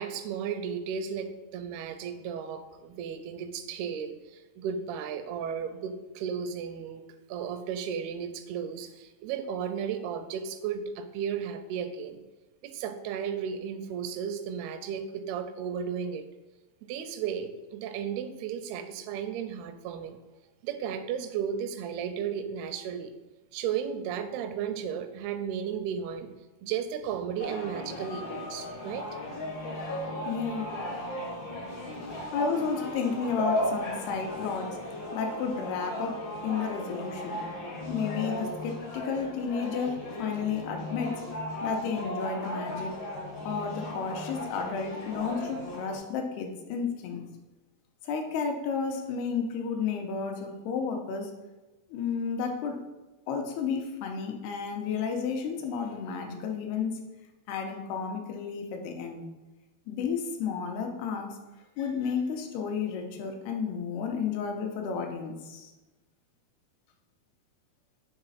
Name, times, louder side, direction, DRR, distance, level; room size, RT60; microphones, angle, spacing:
voice 1, 0.0-7.0 7.3-12.2 12.6-16.2 16.8-20.2 20.6-23.1 23.5-26.3 26.6-29.1, right 7 dB, 85° right, 9 dB, 2.4 m, -34 dB
sound 1, 27.4-46.0, left 1 dB, 70° left, 1.4 m, -36 dB
voice 2, 30.3-30.7 32.3-34.8 35.1-37.4 37.9-41.2 41.6-42.9 43.4-47.2 48.0-51.3 51.9-52.8 53.3-57.0 57.5-59.2 59.9-61.4 61.8-65.7, left 6 dB, 90° left, 3 dB, 2.7 m, -32 dB
6.5 x 4.0 x 4.0 m, 1.1 s
omnidirectional pair, 4.5 m